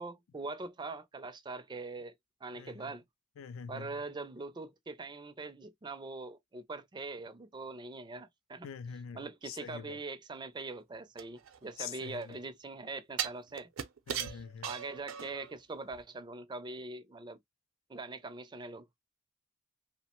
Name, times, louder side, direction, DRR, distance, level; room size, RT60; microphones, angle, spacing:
voice 1, 0.0-2.1 2.4-3.0 3.7-8.7 9.1-13.7 14.3-17.4 17.9-18.9, right 3 dB, 20° right, 0.4 m, -42 dB
voice 2, 3.4-3.9 8.6-10.0 11.8-12.4 14.1-14.7, left 7 dB, 80° left, 0.3 m, -44 dB
sound 1, 11.2-12.3 13.2-15.5 15.9-16.0, right 9 dB, 85° right, 0.5 m, -39 dB
2.8 x 2.0 x 2.9 m
head